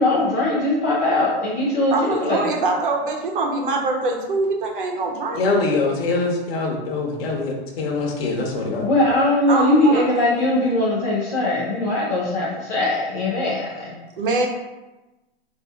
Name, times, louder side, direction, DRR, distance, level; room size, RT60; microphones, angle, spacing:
voice 1, 0.0-1.9 2.2-2.4 8.8-13.9, left 1 dB, 15° left, -5 dB, 0.4 m, -20 dB
voice 2, 1.9-5.5 9.5-10.2 14.2-14.5, right 3 dB, 55° right, 1 dB, 1.0 m, -23 dB
voice 3, 5.3-8.8, left 3 dB, 65° left, -2 dB, 1.1 m, -23 dB
5.3 x 2.8 x 3.5 m, 1.1 s
supercardioid pair, 175°, 32 cm